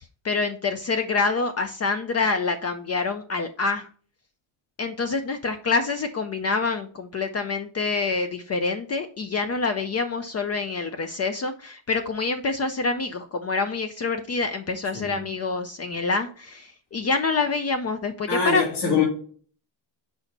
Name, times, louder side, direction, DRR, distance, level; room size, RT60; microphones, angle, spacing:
voice 1, 0.2-3.9 4.8-18.6, left 4 dB, 35° left, 0.4 m, -26 dB
voice 2, 18.3-19.0, left 5 dB, 60° left, 2.8 m, -23 dB
6.2 x 4.9 x 4.0 m
cardioid pair, 180°, 47 cm